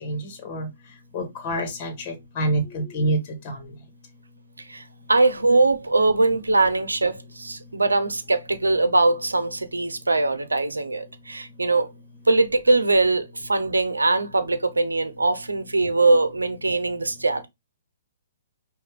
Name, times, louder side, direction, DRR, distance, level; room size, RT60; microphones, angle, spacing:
voice 1, 0.0-0.7 1.1-3.2 3.4-3.6, right 1 dB, 40° left, 1.5 m, -27 dB
voice 2, 4.7-11.9 12.3-17.5, right 2 dB, 90° right, 0.7 m, -21 dB
5.5 x 2.7 x 3.6 m
figure-of-eight pair, 125°, 0 cm